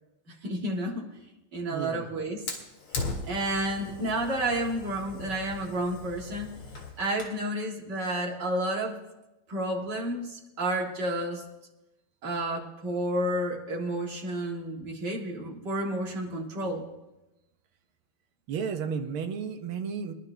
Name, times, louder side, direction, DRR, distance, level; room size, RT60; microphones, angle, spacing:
voice 1, 0.4-1.0 1.5-2.4 3.3-6.5 7.0-9.0 9.5-11.4 12.2-16.9, right 1 dB, 55° right, -1 dB, 2.6 m, -31 dB
voice 2, 1.7-2.1 18.5-20.1, right 6 dB, 80° right, 6 dB, 1.8 m, -33 dB
Fire, 2.5-7.4, left 3 dB, 90° left, 3.0 m, -39 dB
23.5 x 11.5 x 3.3 m, 0.97 s
omnidirectional pair, 2.3 m